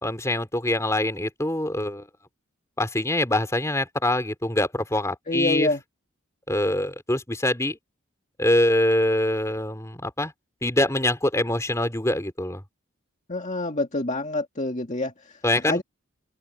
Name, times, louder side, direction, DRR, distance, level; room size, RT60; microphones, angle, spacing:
voice 1, 0.0-2.1 2.8-5.7 6.5-7.8 8.4-10.3 10.6-12.6 15.4-15.8, left 1 dB, 15° left, 3.3 m, -24 dB
voice 2, 5.3-5.8 13.3-15.8, left 2 dB, 35° left, 1.9 m, -27 dB
open air
head